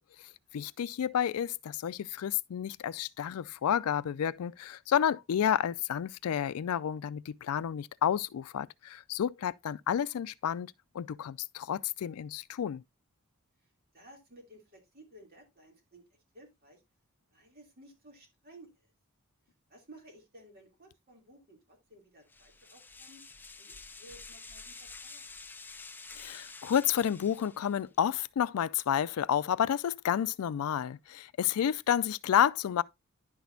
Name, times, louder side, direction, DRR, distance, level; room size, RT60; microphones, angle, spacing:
voice 1, 0.5-12.8 26.2-32.8, left 9 dB, 85° left, 0.4 m, -30 dB
voice 2, 13.6-16.8 17.3-18.9 19.7-23.2 23.6-25.2, right 1 dB, 45° right, 2.9 m, -56 dB
sound 1, 22.3-27.9, left 4 dB, 10° left, 0.4 m, -49 dB
10.5 x 6.1 x 2.7 m
head